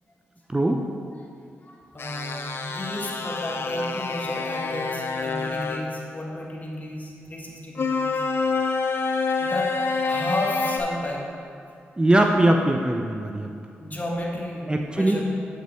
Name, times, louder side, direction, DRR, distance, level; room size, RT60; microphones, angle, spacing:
voice 1, 0.5-0.8 12.0-13.5 14.7-15.2, right 1 dB, 20° right, 3 dB, 0.5 m, -21 dB
voice 2, 1.6-8.2 9.4-11.3 13.8-15.2, left 1 dB, 35° left, -2 dB, 1.4 m, -32 dB
sound 1, 2.0-5.8 7.8-10.8, left 4 dB, 50° left, 0.6 m, -27 dB
7.2 x 5.4 x 3.4 m, 2.4 s
supercardioid pair, 45°, 5 cm